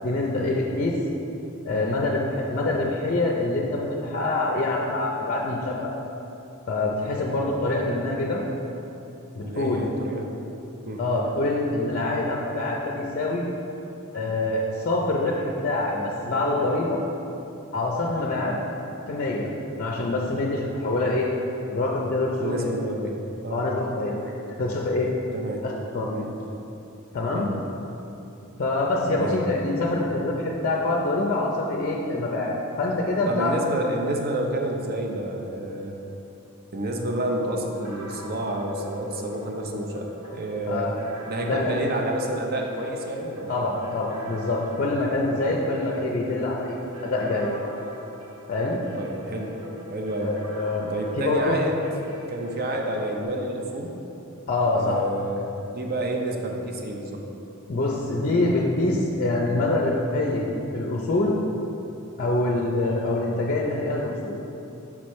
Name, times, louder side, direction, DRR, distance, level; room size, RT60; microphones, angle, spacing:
voice 1, 0.0-1.0 1.7-5.9 6.7-8.4 9.3-9.8 11.0-13.4 14.1-17.0 17.7-18.6 19.1-19.5 19.8-21.3 21.7-22.7 23.5-25.1 25.6-26.2 27.1-27.5 28.6-33.5 40.7-41.0 41.4-41.8 43.5-47.7 48.5-48.8 50.2-50.9 51.2-51.6 54.5-55.0 57.7-60.5 60.7-61.4 62.2-64.4, left 2 dB, 40° left, -2 dB, 0.5 m, -25 dB
voice 2, 9.4-10.3 10.9-11.0 22.4-23.2 23.4-23.6 25.3-25.6 26.1-26.3 27.3-27.5 29.1-29.4 33.3-35.9 36.7-40.9 41.3-43.6 45.6-45.7 49.0-49.6 49.9-50.4 50.9-51.8 52.3-53.9 54.7-57.2, right 1 dB, 45° right, 1 dB, 0.6 m, -29 dB
sound 1, 37.7-53.2, equal, 90° right, 1.4 m, -44 dB
6.1 x 5.9 x 3.1 m, 2.9 s
head